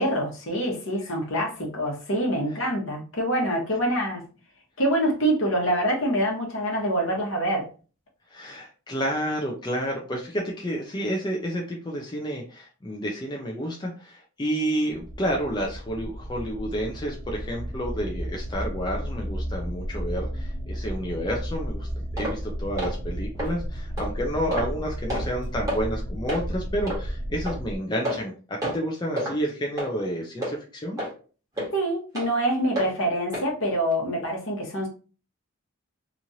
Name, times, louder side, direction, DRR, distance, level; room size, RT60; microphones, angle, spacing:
voice 1, 0.0-4.2 4.8-7.7 31.7-34.9, right 1 dB, 65° left, -1 dB, 1.0 m, -25 dB
voice 2, 8.3-31.0, equal, 20° left, -1 dB, 0.4 m, -30 dB
sound 1, 14.9-27.8, equal, 75° right, 0.7 m, -34 dB
sound 2, 17.3-23.9, left 1 dB, 40° left, 0.9 m, -38 dB
sound 3, 22.2-22.4 22.8-23.0 23.4-23.5 24.0-24.1 24.5-24.7 25.1-25.3 25.7-25.8 26.3-26.4 26.9-27.0 27.4-27.6 28.0-28.3 28.6-28.8 29.2-29.4 29.8-29.9 30.4-30.5 31.0-31.1 31.6-31.7 32.1-32.3 32.8-32.9 33.3-33.5 33.9-34.0, equal, 15° right, 1.3 m, -29 dB
3.0 x 2.5 x 2.6 m, 0.37 s
head